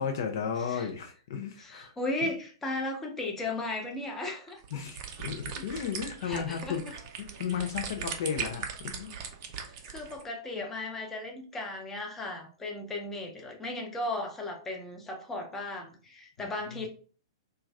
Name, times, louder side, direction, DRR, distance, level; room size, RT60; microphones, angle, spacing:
voice 1, 0.0-1.9 2.2-2.3 4.7-6.8 7.2-9.1 16.4-16.9, left 7 dB, 50° left, 4 dB, 0.5 m, -34 dB
voice 2, 1.6-4.8 6.2-6.8 9.6-16.9, left 2 dB, 10° left, 1 dB, 0.6 m, -36 dB
sound 1, 4.5-10.2, right 6 dB, 40° right, 0.5 m, -39 dB
2.5 x 2.2 x 3.2 m, 0.40 s
figure-of-eight pair, 105°, 2 cm